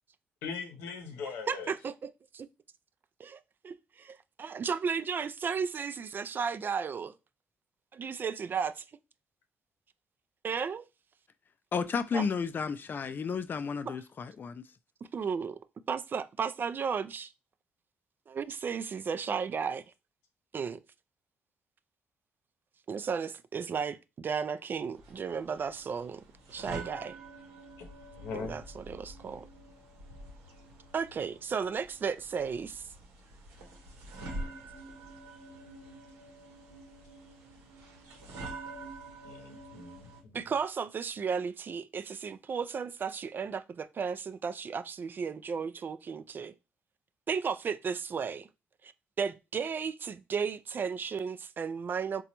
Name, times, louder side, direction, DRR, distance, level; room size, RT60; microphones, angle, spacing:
voice 1, 0.4-1.7 27.8-27.9 28.2-28.6 39.2-40.4, left 5 dB, 90° left, 0.7 m, -40 dB
voice 2, 1.5-1.9 3.2-7.1 7.9-8.8 10.4-10.9 12.1-12.2 13.9-14.0 15.1-15.6 15.9-17.3 18.3-19.8 20.5-20.8 22.9-26.2 26.5-27.1 28.3-29.5 30.9-32.9 40.3-46.5 47.3-48.5 48.8-48.9 49.2-52.2, right 6 dB, 45° right, 0.3 m, -34 dB
voice 3, 11.7-14.6, left 6 dB, 45° left, 0.4 m, -32 dB
sound 1, 24.9-40.2, right 2 dB, 80° right, 0.8 m, -46 dB
3.9 x 2.3 x 2.9 m
supercardioid pair, 60°, 5 cm